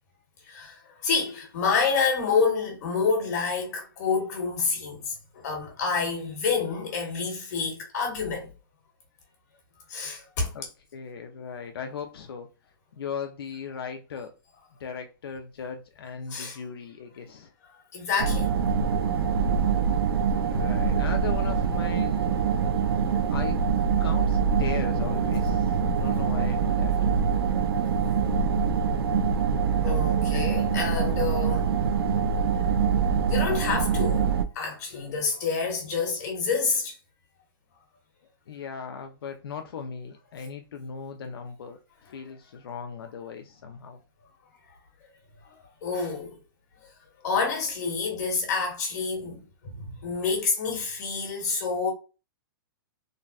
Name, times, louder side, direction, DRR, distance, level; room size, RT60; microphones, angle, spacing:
voice 1, 0.5-8.5 9.9-10.5 16.3-16.6 17.9-18.5 20.9-21.0 29.8-31.7 33.3-34.3 34.5-36.9 45.8-46.4 47.2-51.9, left 5 dB, 45° left, 1.5 m, -28 dB
voice 2, 10.9-12.5 13.0-14.3 14.8-17.5 20.4-22.3 23.3-23.6 24.0-26.9 38.5-44.0, left 6 dB, 80° left, 0.5 m, -38 dB
sound 1, 18.2-34.5, right 6 dB, 80° right, 0.4 m, -24 dB
3.9 x 2.1 x 2.3 m
hypercardioid pair, 170°, 12 cm